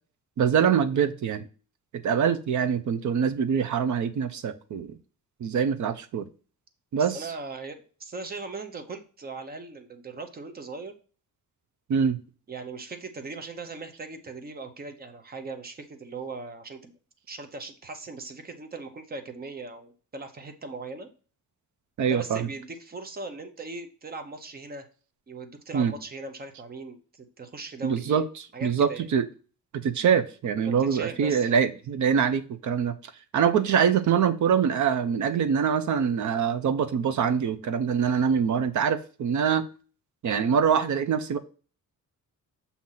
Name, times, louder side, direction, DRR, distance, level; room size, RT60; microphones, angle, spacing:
voice 1, 0.4-1.5 1.9-4.9 5.4-6.3 6.9-7.3 11.9-12.2 22.0-22.5 25.7-25.9 27.8-28.2 28.6-29.3 29.7-39.6 40.2-41.4, right 7 dB, 60° right, 11 dB, 0.7 m, -24 dB
voice 2, 6.9-10.9 12.5-17.0 17.3-21.1 22.0-24.9 25.3-28.2 28.5-29.1 30.7-31.6, right 3 dB, 30° right, 8 dB, 0.8 m, -39 dB
7.6 x 2.8 x 5.7 m, 0.37 s
wide cardioid pair, 165°, 34 cm